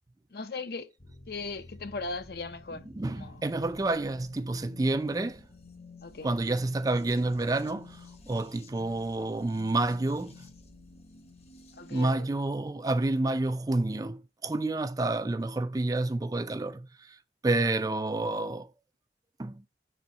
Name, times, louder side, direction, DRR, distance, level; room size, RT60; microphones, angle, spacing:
voice 1, 0.3-0.9 1.3-2.9 3.1-3.4 6.0-6.3 11.8-12.3, left 3 dB, 60° left, 0.6 m, -38 dB
sound 1, 1.0-12.1, left 3 dB, 35° left, 0.9 m, -52 dB
voice 2, 2.9-5.4 6.2-10.5 11.9-18.7 19.4-19.6, right 2 dB, 20° right, 0.3 m, -29 dB
6.2 x 4.4 x 3.9 m
head